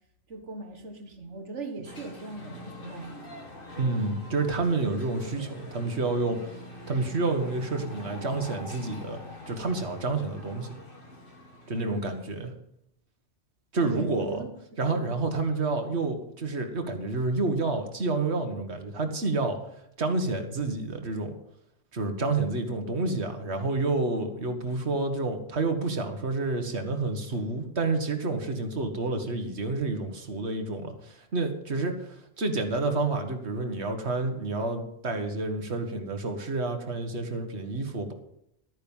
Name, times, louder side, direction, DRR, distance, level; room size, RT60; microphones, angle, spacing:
voice 1, 0.3-3.2 13.9-14.5 14.9-15.2, right 2 dB, 85° right, 3 dB, 2.0 m, -39 dB
sound 1, 1.8-12.4, left 1 dB, 50° left, 2.2 m, -44 dB
voice 2, 3.8-6.4 6.9-9.2 9.5-10.8 11.7-12.5 13.7-14.4 14.8-19.6 20.0-21.3 21.9-38.1, right 3 dB, 65° right, 6 dB, 1.9 m, -29 dB
13.0 x 9.4 x 5.5 m, 0.77 s
omnidirectional pair, 1.2 m